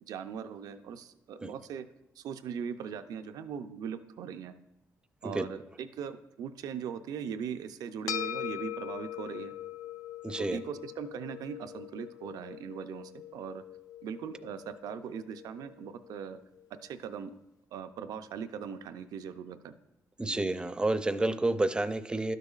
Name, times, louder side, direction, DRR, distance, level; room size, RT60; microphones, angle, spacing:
voice 1, 0.1-1.9 2.2-4.5 5.2-9.5 10.4-13.6 14.0-16.4 16.8-17.4 17.7-19.7 20.2-20.4, right 7 dB, 85° right, 10 dB, 0.4 m, -40 dB
sound 1, 8.1-16.7, left 11 dB, 80° left, 0.4 m, -42 dB
voice 2, 10.2-10.6 20.2-22.4, right 2 dB, 15° right, 12 dB, 0.4 m, -30 dB
12.0 x 6.6 x 2.4 m, 0.93 s
cardioid pair, 95°, 6 cm